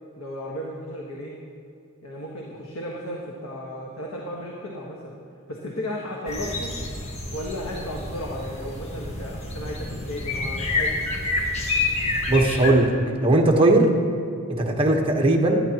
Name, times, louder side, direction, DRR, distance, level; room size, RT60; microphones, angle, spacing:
voice 1, 0.2-1.4 2.0-5.2 5.5-6.7 7.3-11.0, equal, 70° left, -3 dB, 1.5 m, -34 dB
sound 1, 6.3-12.7, left 3 dB, 30° left, 1.4 m, -28 dB
voice 2, 12.3-13.9 14.6-15.6, right 2 dB, 25° right, 1 dB, 1.2 m, -19 dB
18.0 x 12.0 x 3.0 m, 2.5 s
head